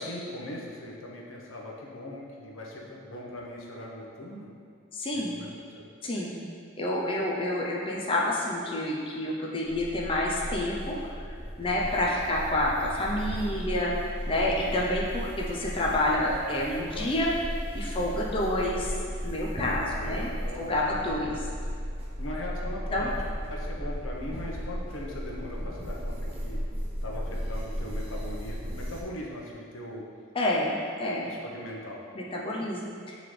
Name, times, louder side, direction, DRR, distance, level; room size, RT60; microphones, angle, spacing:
voice 1, 0.0-4.5 5.1-5.9 12.0-12.2 16.9-17.1 19.6-21.4 22.2-23.1 23.5-26.6 27.0-30.0 31.2-32.1, left 1 dB, 85° left, -2 dB, 0.9 m, -40 dB
voice 2, 4.9-5.3 6.0-6.4 6.8-11.0 11.6-13.9 14.3-17.3 17.7-18.9 19.2-20.3 20.6-21.4 22.9-23.1 30.3-31.4 32.1-33.2, left 1 dB, 25° left, -4 dB, 0.5 m, -28 dB
sound 1, 9.7-29.0, equal, 30° right, 0.7 m, -35 dB
7.4 x 3.9 x 3.3 m, 2.3 s
head